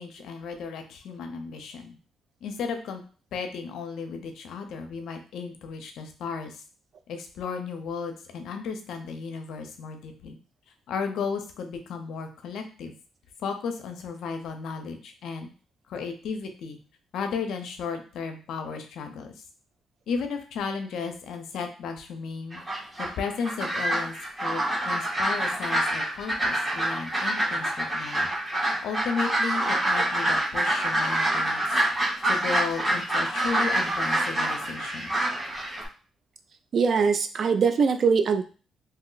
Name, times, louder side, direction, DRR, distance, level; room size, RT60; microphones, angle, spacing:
voice 1, 0.0-2.0 2.4-3.0 3.3-6.6 7.1-10.4 10.9-12.9 13.4-15.5 15.9-16.8 17.1-19.4 20.1-22.6 23.0-28.3 28.8-31.8 32.2-35.1, left 5 dB, 75° left, 6 dB, 0.5 m, -34 dB
sound 1, 22.5-35.9, right 1 dB, 15° right, 0.9 m, -26 dB
voice 2, 36.7-38.4, right 5 dB, 55° right, 8 dB, 0.3 m, -22 dB
2.7 x 2.1 x 3.8 m, 0.38 s
cardioid pair, 90°, 0 cm